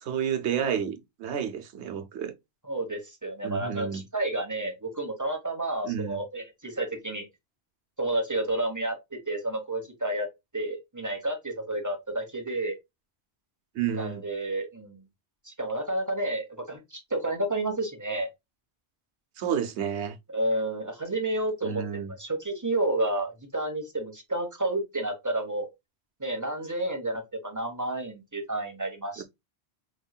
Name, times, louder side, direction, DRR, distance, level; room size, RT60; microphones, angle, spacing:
voice 1, 0.0-2.3 3.4-4.0 5.8-6.2 13.7-14.3 19.4-20.2 21.6-22.1 29.2-29.3, right 8 dB, 85° right, 1.0 m, -30 dB
voice 2, 2.6-7.3 8.0-10.3 10.5-12.8 13.9-15.0 15.4-18.3 20.3-21.8 22.2-25.7 26.2-29.2, right 1 dB, 15° right, 1.1 m, -30 dB
5.3 x 3.1 x 2.3 m
omnidirectional pair, 1.1 m